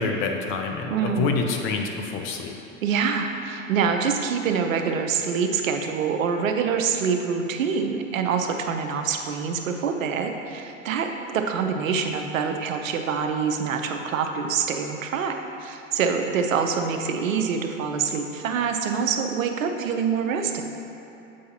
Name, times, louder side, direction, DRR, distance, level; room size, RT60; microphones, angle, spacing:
voice 1, 0.0-2.6, left 4 dB, 35° left, 3 dB, 0.6 m, -27 dB
voice 2, 0.9-1.4 2.8-20.6, right 6 dB, 80° right, 5 dB, 0.7 m, -25 dB
7.4 x 4.7 x 2.8 m, 2.9 s
hypercardioid pair, 110°, 39 cm